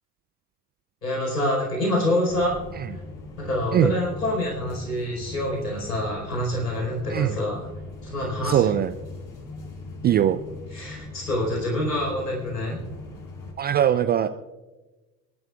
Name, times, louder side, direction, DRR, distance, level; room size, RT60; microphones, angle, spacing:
voice 1, 1.0-2.6 3.4-7.6 8.0-8.8 10.7-12.8, left 1 dB, 85° left, -2 dB, 4.6 m, -26 dB
sound 1, 2.3-13.5, left 2 dB, 45° left, 4.5 m, -39 dB
voice 2, 8.4-8.9 10.0-10.4 13.6-14.3, right 10 dB, 20° right, 10 dB, 0.4 m, -20 dB
27.5 x 12.5 x 2.4 m, 1.1 s
figure-of-eight pair, 70°, 47 cm